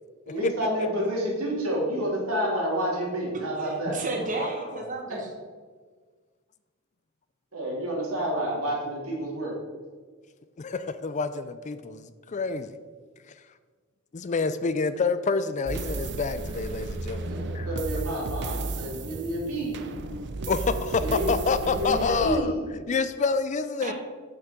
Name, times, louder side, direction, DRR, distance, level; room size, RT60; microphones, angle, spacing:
voice 1, 0.3-4.0 7.5-9.6 17.2-19.9 21.0-21.3 21.6-22.7, equal, 85° right, -3 dB, 2.9 m, -29 dB
voice 2, 3.3-5.3 23.8-23.9, right 3 dB, 40° right, 1 dB, 1.0 m, -33 dB
voice 3, 10.6-12.7 14.1-17.7 20.5-22.6 22.9-23.9, left 4 dB, 35° left, 12 dB, 0.4 m, -28 dB
sound 1, 15.7-22.4, right 3 dB, 55° right, 0.6 m, -34 dB
6.6 x 5.8 x 6.7 m, 1.5 s
head